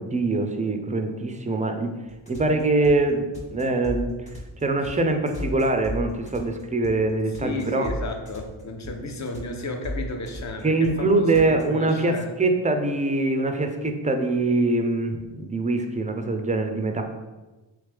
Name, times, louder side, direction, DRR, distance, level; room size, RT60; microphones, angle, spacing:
voice 1, 0.0-1.9 2.3-4.1 4.6-7.9 10.6-17.0, right 2 dB, 15° right, 5 dB, 0.4 m, -23 dB
sound 1, 2.1-11.6, equal, 15° left, 1.2 m, -34 dB
voice 2, 7.4-12.3, left 2 dB, 35° left, 4 dB, 0.6 m, -33 dB
3.6 x 3.2 x 3.4 m, 1.1 s
cardioid pair, 70°, 50 cm